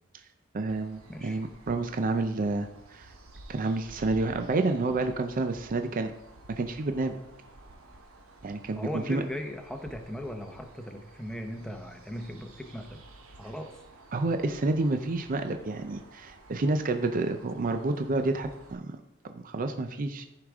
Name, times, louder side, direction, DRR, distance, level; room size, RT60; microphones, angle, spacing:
voice 1, 0.5-3.1 3.5-6.1 6.5-7.2 8.4-9.2 14.1-19.0 19.2-20.2, right 2 dB, 40° right, 7 dB, 0.5 m, -29 dB
sound 1, 0.7-18.7, right 2 dB, 85° right, 1.2 m, -52 dB
voice 2, 1.1-1.4 8.8-13.0 13.4-13.7, equal, 5° left, 4 dB, 0.8 m, -38 dB
14.0 x 4.9 x 3.6 m, 0.91 s
head